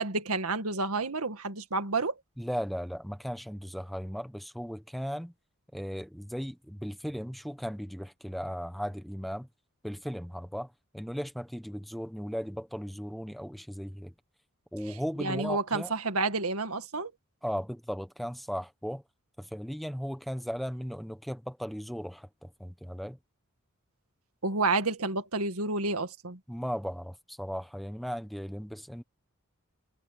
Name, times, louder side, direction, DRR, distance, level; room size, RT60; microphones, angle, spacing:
voice 1, 0.0-2.1 15.2-17.1 24.4-26.4, right 3 dB, 80° right, 1.9 m, -30 dB
voice 2, 2.4-5.3 5.7-9.5 9.8-14.1 14.7-15.9 17.4-19.0 19.4-23.2 26.5-29.0, equal, ahead, 0.8 m, -37 dB
head